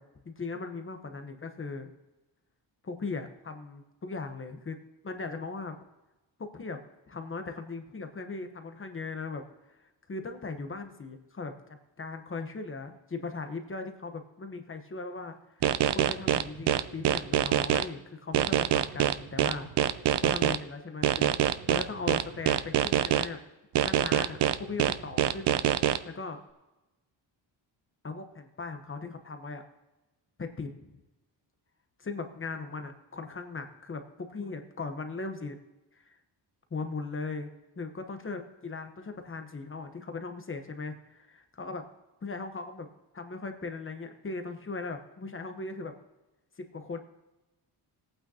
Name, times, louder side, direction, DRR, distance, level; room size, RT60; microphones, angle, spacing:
voice 1, 0.2-1.9 2.8-4.8 5.0-5.8 6.4-6.8 7.1-9.4 9.7-9.8 10.1-21.3 21.7-23.4 23.8-25.7 26.0-26.4 28.0-29.6 30.4-30.9 32.0-35.6 35.9-36.2 36.7-37.5 37.8-41.8 42.2-42.9 43.1-45.9 46.6-47.0, left 3 dB, 30° left, 6 dB, 1.0 m, -38 dB
sound 1, 15.6-17.8 18.3-20.6 21.0-23.3 23.8-26.0, right 11 dB, 65° right, 0.6 m, -24 dB
19.0 x 9.0 x 2.8 m, 1.0 s
wide cardioid pair, 140°, 45 cm